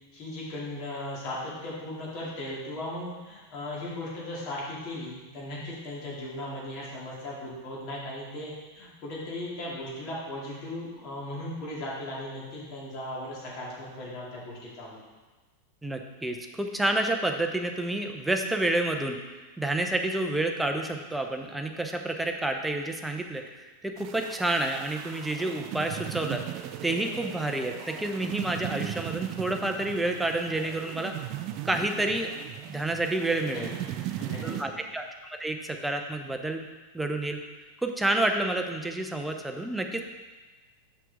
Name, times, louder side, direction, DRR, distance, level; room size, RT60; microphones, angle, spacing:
voice 1, 0.1-15.0 33.5-34.8, left 1 dB, 40° left, -5 dB, 2.3 m, -37 dB
voice 2, 15.8-19.2 19.6-26.4 26.8-31.1 31.7-32.3 32.7-33.7 34.4-36.6 36.9-37.4 37.8-40.0, right 2 dB, 5° right, 4 dB, 0.6 m, -29 dB
sound 1, 24.0-34.6, right 12 dB, 40° right, 0.3 m, -38 dB
6.5 x 5.9 x 3.5 m, 1.2 s
figure-of-eight pair, 90°, 0 cm